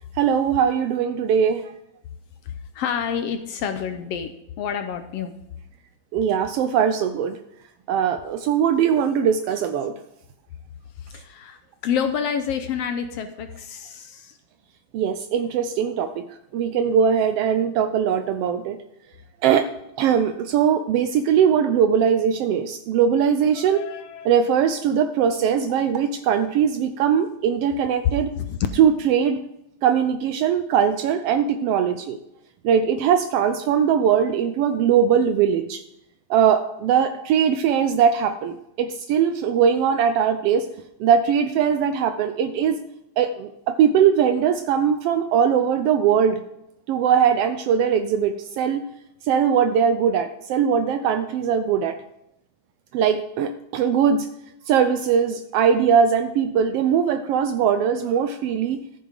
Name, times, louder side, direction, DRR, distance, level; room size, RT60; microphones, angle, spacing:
voice 1, 0.1-1.7 6.1-7.4 7.9-9.9 14.9-16.3 16.5-18.8 19.4-19.7 20.0-23.8 24.2-28.3 28.8-29.4 29.8-32.2 32.6-35.8 36.3-40.7 41.0-42.8 43.2-46.4 46.9-48.9 49.2-52.0 52.9-54.3 54.7-58.8, right 8 dB, 85° right, 8 dB, 1.3 m, -20 dB
voice 2, 2.4-5.3 11.0-14.4 23.5-24.3 28.4-28.6, left 7 dB, 75° left, 8 dB, 1.6 m, -29 dB
14.0 x 6.7 x 5.1 m, 0.83 s
omnidirectional pair, 3.3 m